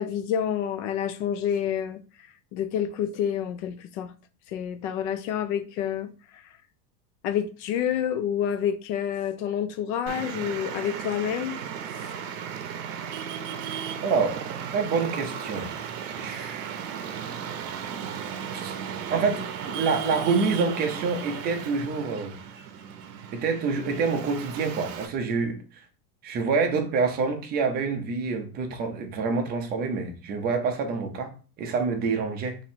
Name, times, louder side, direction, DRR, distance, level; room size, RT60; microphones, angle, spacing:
voice 1, 0.0-2.0 2.5-4.1 4.5-6.4 7.2-11.6, left 9 dB, 50° left, 0.5 m, -28 dB
Traffic noise roadway noise, 10.1-25.1, right 8 dB, 55° right, 0.7 m, -35 dB
voice 2, 14.0-14.4 14.7-15.7 16.1-16.8 17.9-18.0 18.5-18.7 19.1-22.4 23.3-25.6 26.2-31.3 31.6-32.6, right 4 dB, 20° right, 0.5 m, -27 dB
3.0 x 2.7 x 4.3 m
supercardioid pair, 150°, 46 cm